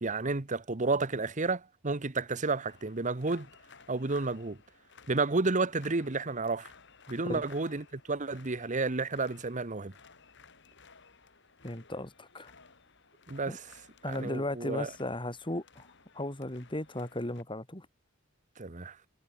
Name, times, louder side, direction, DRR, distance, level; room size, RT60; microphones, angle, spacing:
voice 1, 0.0-3.5 3.9-4.6 5.1-6.7 7.1-9.9 13.3-13.8 14.1-14.9 18.6-19.0, right 3 dB, 40° right, 1.1 m, -31 dB
sound 1, 2.6-17.4, left 5 dB, 65° left, 7.9 m, -58 dB
voice 2, 11.6-12.5 13.5-13.6 14.0-15.9 16.1-17.9, left 1 dB, 25° left, 3.8 m, -36 dB
head